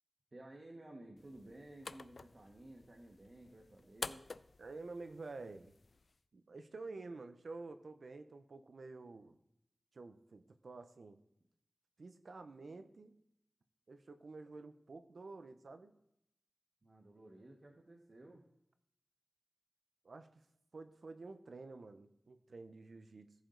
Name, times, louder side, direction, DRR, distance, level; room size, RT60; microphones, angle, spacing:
voice 1, 0.3-4.3 16.8-18.5, right 1 dB, 50° right, 0 dB, 1.4 m, -55 dB
sound 1, 1.2-6.2, left 4 dB, 75° left, 0.3 m, -50 dB
voice 2, 4.6-5.8 6.3-9.4 9.9-11.2 12.0-13.1 13.9-15.9 20.0-20.3 20.7-23.3, right 3 dB, 80° right, 9 dB, 0.7 m, -50 dB
14.5 x 5.0 x 3.9 m, 0.78 s
cardioid pair, 50°, 0 cm